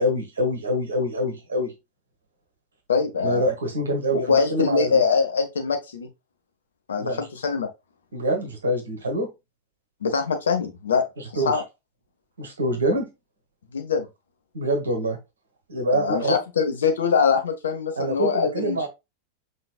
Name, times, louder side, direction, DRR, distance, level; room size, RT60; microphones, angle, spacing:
voice 1, 0.0-1.7 3.2-5.0 7.0-7.2 8.1-9.3 11.2-11.6 12.4-13.1 14.5-15.2 15.7-16.4 18.0-18.9, equal, 70° right, 1.4 m, -25 dB
voice 2, 2.9-3.4 4.1-6.1 6.9-7.7 10.0-11.0 11.5-11.6 13.7-14.1 15.9-18.9, left 5 dB, 65° left, 0.9 m, -23 dB
5.8 x 3.1 x 2.3 m
figure-of-eight pair, 90°, 0 cm